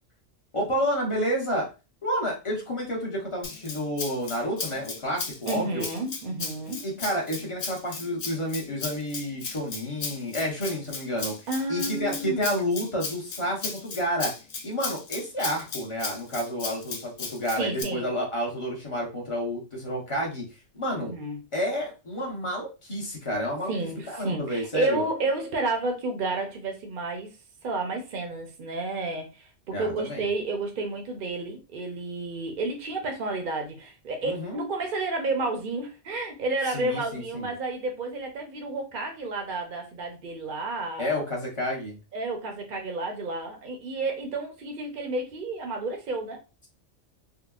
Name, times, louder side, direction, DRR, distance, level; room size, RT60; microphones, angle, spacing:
voice 1, 0.5-1.7 2.0-5.9 6.8-11.3 11.7-14.3 14.6-20.4 20.7-21.1 21.5-25.0 29.7-30.3 34.2-34.6 36.7-37.5 41.0-42.0, equal, 30° left, -2 dB, 0.9 m, -30 dB
Rattle (instrument), 3.4-17.8, left 4 dB, 65° left, 0.4 m, -36 dB
voice 2, 5.5-6.8 11.5-12.5 17.5-18.1 21.0-21.4 23.7-27.3 27.6-41.2 42.1-46.4, right 2 dB, 50° right, 3 dB, 0.7 m, -31 dB
3.7 x 2.1 x 2.3 m, 0.30 s
omnidirectional pair, 1.3 m